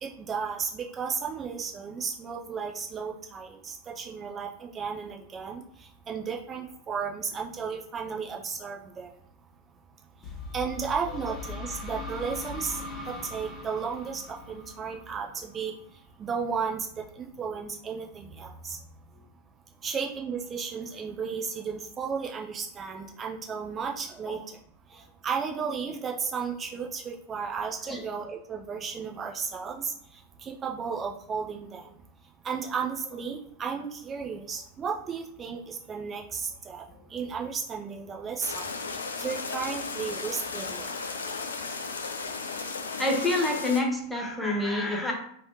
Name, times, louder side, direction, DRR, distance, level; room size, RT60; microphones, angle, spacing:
voice 1, 0.0-9.1 10.5-12.8 13.1-15.7 16.2-16.9 17.1-18.8 19.8-24.4 24.9-31.9 32.4-36.8 37.1-40.9, right 6 dB, 25° right, -1 dB, 0.4 m, -34 dB
sound 1, 10.2-15.9, left 3 dB, 20° left, 1.1 m, -40 dB
sound 2, 38.4-43.8, left 4 dB, 70° left, 0.4 m, -35 dB
voice 2, 43.0-45.1, left 2 dB, ahead, -1 dB, 0.8 m, -27 dB
3.1 x 2.8 x 2.8 m, 0.68 s
figure-of-eight pair, 90°, 0 cm